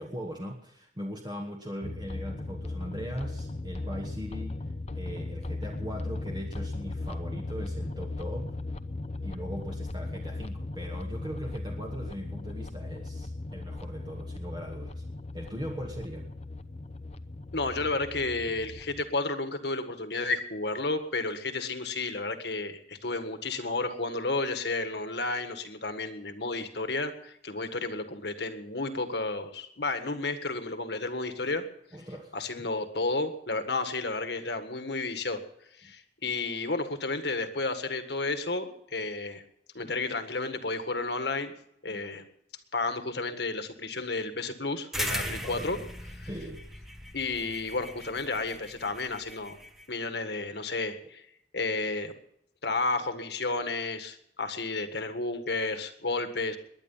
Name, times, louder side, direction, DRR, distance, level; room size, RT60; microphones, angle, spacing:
voice 1, 0.0-8.6 9.2-15.0 15.3-16.3 31.9-32.7 39.8-39.9 41.9-42.0 45.2-45.7 46.2-46.7, equal, 25° right, 1 dB, 1.3 m, -40 dB
sound 1, 1.8-19.0, left 2 dB, 35° left, 0.8 m, -37 dB
voice 2, 17.5-31.6 32.3-35.4 35.8-39.4 39.7-41.5 41.8-42.2 42.7-45.8 46.2-46.3 47.1-49.6 49.9-51.2 51.5-52.1 52.6-56.6, left 3 dB, 65° left, 8 dB, 1.7 m, -32 dB
sound 2, 44.9-49.8, equal, ahead, 1.4 m, -38 dB
21.0 x 10.0 x 5.6 m, 0.74 s
head